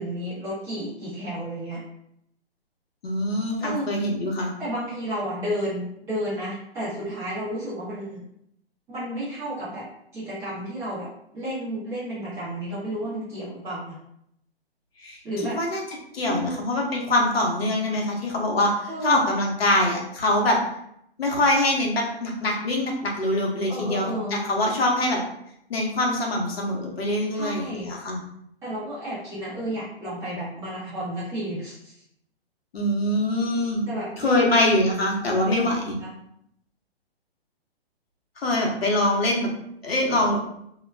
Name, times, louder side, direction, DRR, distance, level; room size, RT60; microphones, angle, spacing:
voice 1, 0.0-1.8 3.6-3.9 4.6-8.2 8.9-9.9 10.1-14.0 15.2-15.6 16.3-16.6 18.9-19.3 23.7-24.4 27.3-27.9 28.6-32.0 33.9-34.5 35.5-35.6 35.9-36.1 40.1-40.4, right 1 dB, 10° right, -10 dB, 0.5 m, -32 dB
voice 2, 3.0-4.5 15.0-15.2 15.5-15.8 16.1-20.6 21.2-25.2 25.7-28.2 32.7-33.9 34.2-36.0 38.4-39.5 39.8-40.4, left 1 dB, 70° left, 0 dB, 0.9 m, -24 dB
2.3 x 2.1 x 3.2 m, 0.73 s
hypercardioid pair, 145°, 31 cm